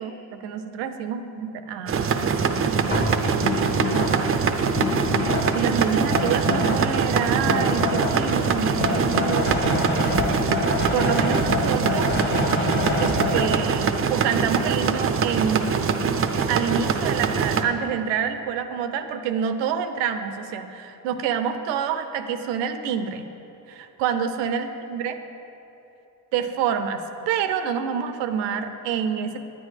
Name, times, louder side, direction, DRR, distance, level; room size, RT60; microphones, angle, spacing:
voice 1, 0.0-3.1 3.9-4.4 5.5-10.0 10.4-12.3 13.0-16.2 16.5-23.3 23.7-25.2 26.3-29.4, right 7 dB, 85° right, 9 dB, 0.6 m, -28 dB
sound 1, 1.9-17.6, right 6 dB, 35° right, 0.5 m, -23 dB
sound 2, 2.9-13.6, left 2 dB, 25° left, 1.1 m, -27 dB
9.0 x 8.4 x 3.2 m, 3.0 s
supercardioid pair, 75°, 42 cm